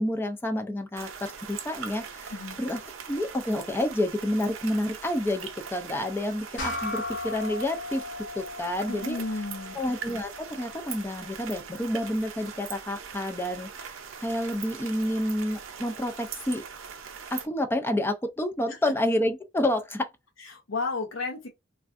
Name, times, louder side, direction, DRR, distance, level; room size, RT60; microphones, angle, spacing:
voice 1, 0.0-2.3 2.6-2.8 3.1-8.0 8.4-9.2 9.7-16.7 17.3-20.1, left 1 dB, 10° left, 0.3 m, -29 dB
sound 1, 1.0-17.5, right 7 dB, 90° right, 0.6 m, -41 dB
voice 2, 2.3-2.6 8.9-9.8 18.7-18.8 20.4-21.5, left 3 dB, 85° left, 0.7 m, -33 dB
sound 2, 6.6-11.3, left 2 dB, 65° left, 1.2 m, -37 dB
3.3 x 2.4 x 2.4 m
head